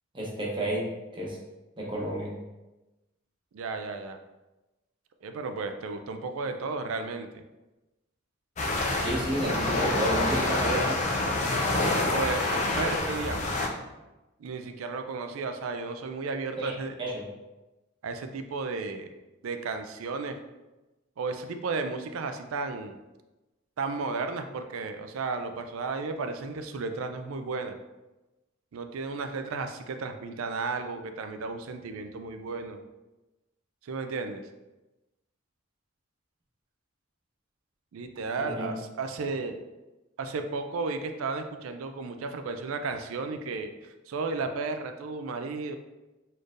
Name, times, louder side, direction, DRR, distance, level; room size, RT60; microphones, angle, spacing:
voice 1, 0.1-1.4 1.8-2.3 9.0-11.0 16.6-17.2 38.4-38.7, equal, 25° right, -4 dB, 0.9 m, -31 dB
voice 2, 3.5-4.2 5.2-7.4 12.1-12.4 12.7-13.5 14.4-17.0 18.0-19.1 19.4-20.3 21.2-23.0 23.8-27.8 28.7-32.8 33.8-34.4 37.9-39.5 40.2-43.7 44.1-45.8, right 4 dB, 85° right, 7 dB, 0.4 m, -33 dB
sound 1, 8.6-13.7, left 2 dB, 35° left, 0.4 m, -27 dB
4.2 x 3.2 x 2.5 m, 1.1 s
head